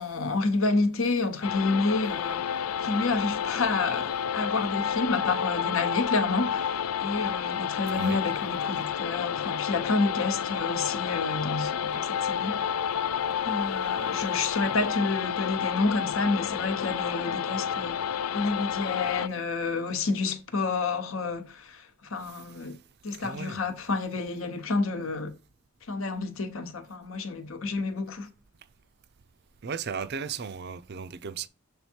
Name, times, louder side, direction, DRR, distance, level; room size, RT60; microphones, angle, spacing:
voice 1, 0.0-2.4 2.8-12.6 13.4-18.0 18.3-22.8 23.0-25.3 25.9-28.3, left 3 dB, 65° left, 1.0 m, -29 dB
sound 1, 1.4-19.3, left 8 dB, 90° left, 0.4 m, -30 dB
voice 2, 23.1-23.6 29.6-31.5, right 6 dB, 50° right, 0.5 m, -36 dB
7.0 x 3.6 x 4.4 m
head